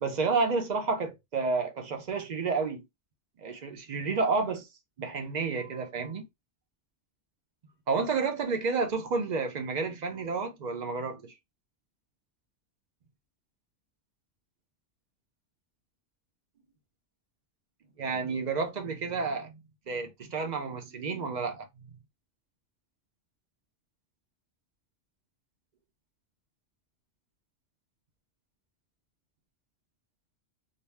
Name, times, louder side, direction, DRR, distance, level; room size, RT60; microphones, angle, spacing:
voice 1, 0.0-2.8 3.4-4.7 5.0-6.2 7.9-11.3 18.0-21.9, right 4 dB, 50° right, 0.6 m, -30 dB
2.5 x 2.0 x 3.2 m
omnidirectional pair, 1.2 m